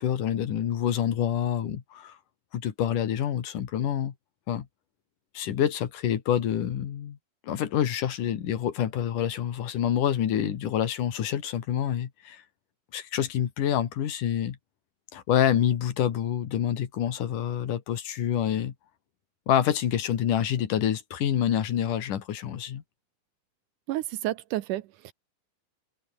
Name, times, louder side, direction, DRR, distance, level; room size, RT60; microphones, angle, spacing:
voice 1, 0.0-2.2 2.5-4.1 4.5-4.7 5.3-7.2 7.4-12.4 12.9-14.6 15.1-18.7 19.5-22.8, left 10 dB, 60° left, 3.3 m, -27 dB
voice 2, 23.9-25.1, right 15 dB, 80° right, 1.9 m, -31 dB
open air
omnidirectional pair, 4.5 m